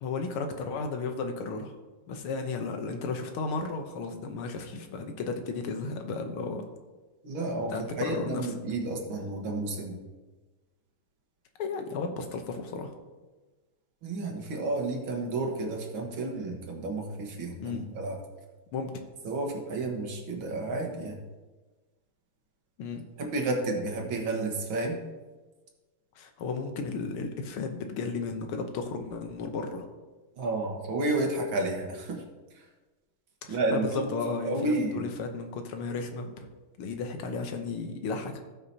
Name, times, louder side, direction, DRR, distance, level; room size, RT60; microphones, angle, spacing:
voice 1, 0.0-1.8 2.1-6.7 7.7-8.5 11.6-12.9 17.6-17.9 18.7-18.9 22.8-23.0 26.2-29.9 33.4-36.5 36.8-38.3, left 4 dB, 90° left, 5 dB, 1.9 m, -34 dB
voice 2, 7.2-10.0 14.0-18.2 19.2-21.2 23.2-25.0 30.4-32.2 32.5-32.7 33.5-34.1 34.4-35.1, right 2 dB, 70° right, 2 dB, 2.2 m, -31 dB
17.0 x 5.8 x 2.8 m, 1.3 s
omnidirectional pair, 2.3 m